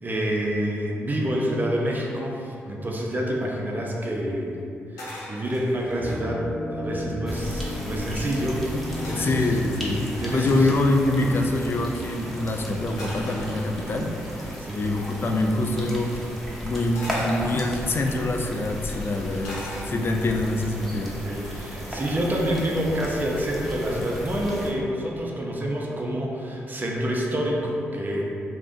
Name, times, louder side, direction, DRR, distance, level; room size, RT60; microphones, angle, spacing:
voice 1, 0.0-4.6 4.9-6.4 6.7-8.6 9.1-9.4 10.2-10.7 14.6-14.8 21.2-28.3, equal, 35° right, -2 dB, 0.6 m, -27 dB
sound 1, 5.0-6.3 6.9-7.0 7.1-7.8 9.0-10.5 13.0-14.1 15.0-15.2 17.0-18.2 19.4-20.3 20.7-21.1, left 1 dB, 85° left, 0.6 m, -40 dB
sound 2, 6.0-14.7, equal, 50° right, 1.0 m, -35 dB
sound 3, 7.3-24.7, equal, 5° left, 0.8 m, -35 dB
voice 2, 9.1-10.0 10.3-16.1 16.6-21.2 24.0-24.1, left 2 dB, 45° left, 3 dB, 0.3 m, -25 dB
2.5 x 2.1 x 3.7 m, 2.5 s
supercardioid pair, 45°, 6 cm